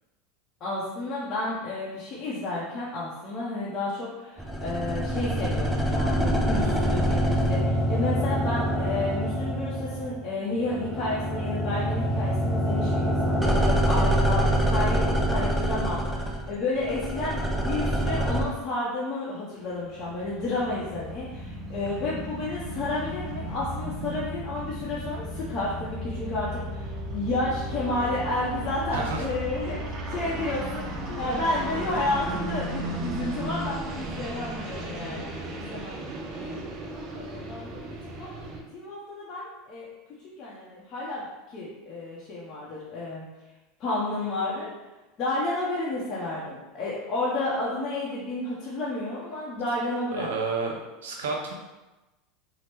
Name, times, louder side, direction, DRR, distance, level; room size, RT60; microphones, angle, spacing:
voice 1, 0.6-16.1 16.5-30.9 31.2-36.0 36.4-38.3 38.7-39.9 40.4-43.2 43.8-44.7 45.2-50.3, left 2 dB, 45° left, -7 dB, 0.7 m, -31 dB
sound 1, 4.4-10.3 10.6-18.4, equal, 5° right, 0.4 m, -25 dB
sound 2, 19.8-38.6, right 1 dB, 40° right, 0.6 m, -35 dB
voice 2, 28.9-29.2 50.1-50.8 51.0-51.5, right 4 dB, 90° right, 0 dB, 0.6 m, -30 dB
sound 3, 31.0-33.9, left 3 dB, 80° left, 0.9 m, -45 dB
2.9 x 2.0 x 3.3 m, 1.1 s
supercardioid pair, 105°, 0 cm